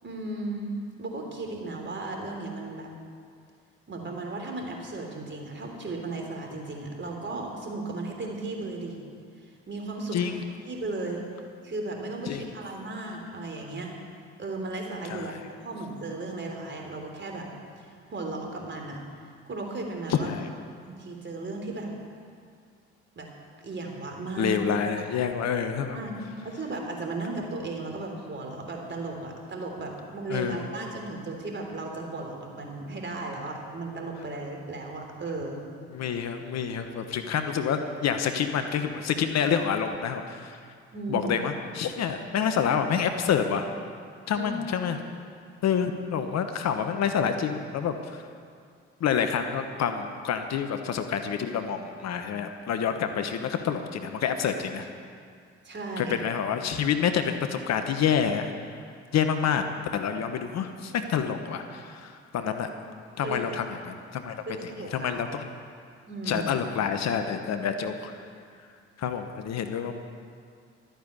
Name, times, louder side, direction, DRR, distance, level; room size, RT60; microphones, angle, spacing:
voice 1, 0.0-0.7 1.0-2.9 3.9-9.0 9.4-10.4 10.7-11.2 11.6-13.9 14.4-17.5 17.8-19.0 19.5-20.3 20.9-21.9 23.2-23.3 23.6-24.6 25.9-26.2 26.4-35.6 40.9-41.3 44.3-44.5 55.6-56.2 63.2-63.4 64.5-65.2 66.1-66.5, right 2 dB, 35° right, 1 dB, 3.5 m, -35 dB
voice 2, 20.1-20.5 24.4-25.9 30.3-30.6 35.9-40.6 41.1-43.6 44.3-45.0 45.6-48.2 49.0-54.9 56.0-58.5 59.1-59.6 59.9-62.7 63.2-64.3 64.6-65.5 66.3-68.1 69.0-69.9, left 7 dB, 55° left, 7 dB, 1.2 m, -28 dB
13.0 x 9.3 x 8.3 m, 2.2 s
hypercardioid pair, 50°, 31 cm